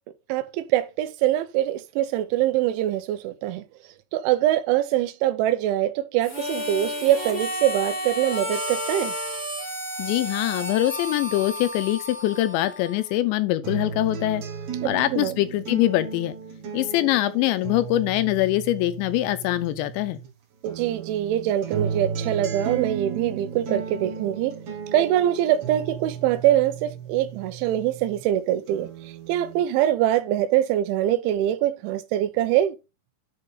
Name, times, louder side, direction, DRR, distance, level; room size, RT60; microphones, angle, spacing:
voice 1, 0.3-3.6 4.1-9.1 14.8-15.3 20.6-24.5 24.9-28.9 29.3-32.7, right 12 dB, 85° right, 3.2 m, -23 dB
Harmonica, 6.2-13.1, equal, 35° left, 1.0 m, -32 dB
voice 2, 10.0-14.4 14.8-16.4 16.7-20.2, left 15 dB, 80° left, 2.9 m, -23 dB
sound 1, 13.6-20.3 20.7-28.3 28.7-29.6, right 6 dB, 50° right, 2.0 m, -35 dB
9.9 x 4.0 x 5.4 m
omnidirectional pair, 5.4 m